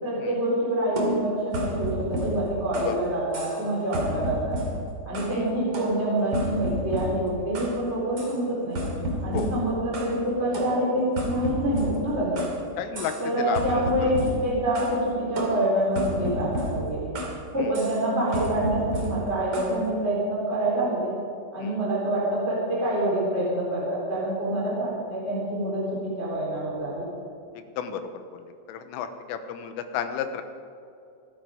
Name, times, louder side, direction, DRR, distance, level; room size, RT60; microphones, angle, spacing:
voice 1, 0.0-4.6 5.0-8.9 9.2-12.4 13.2-17.1 17.5-21.1 21.5-27.0, right 1 dB, 15° right, -6 dB, 3.5 m, -26 dB
sound 1, 1.0-3.0 3.3-3.7 3.9-5.4 5.7-7.8 8.2-8.4 8.7-10.2 10.5-12.6 12.9-13.3 13.5-15.0 15.4-17.4 17.7-18.0 18.3-19.8, equal, 40° right, 2.4 m, -32 dB
voice 2, 12.8-13.6 14.0-14.1 21.6-21.8 27.8-28.2 28.7-30.4, left 9 dB, 90° left, 8 dB, 3.6 m, -32 dB
25.5 x 9.5 x 5.1 m, 2.5 s
omnidirectional pair, 5.7 m